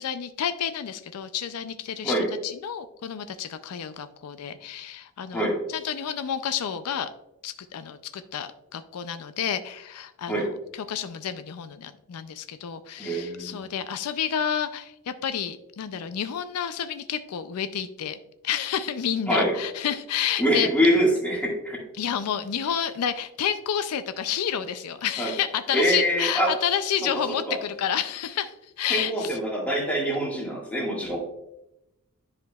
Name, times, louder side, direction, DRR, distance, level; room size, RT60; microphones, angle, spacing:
voice 1, 0.0-5.4 5.7-7.1 7.4-18.2 18.4-20.7 21.9-29.4, left 8 dB, 80° left, 11 dB, 0.4 m, -30 dB
voice 2, 13.0-13.6 19.3-19.5 20.4-21.8 25.2-25.3 25.7-26.5 27.5-27.6 28.9-31.2, equal, 5° left, -2 dB, 1.7 m, -24 dB
10.5 x 5.0 x 2.3 m, 0.87 s
head